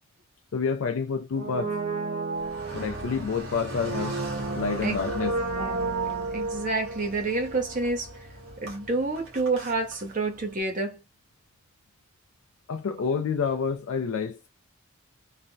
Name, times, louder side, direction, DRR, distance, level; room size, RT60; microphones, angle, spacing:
voice 1, 0.5-1.8 2.7-4.2 4.6-5.4 12.7-14.5, left 5 dB, 70° left, 0.4 m, -28 dB
Brass instrument, 1.3-8.2 8.4-8.5, right 3 dB, 85° right, 1.1 m, -32 dB
Car, 2.3-10.6, equal, 60° right, 1.1 m, -42 dB
voice 2, 6.3-8.2 8.6-11.0, right 3 dB, 35° right, 0.6 m, -28 dB
3.1 x 2.1 x 2.6 m
head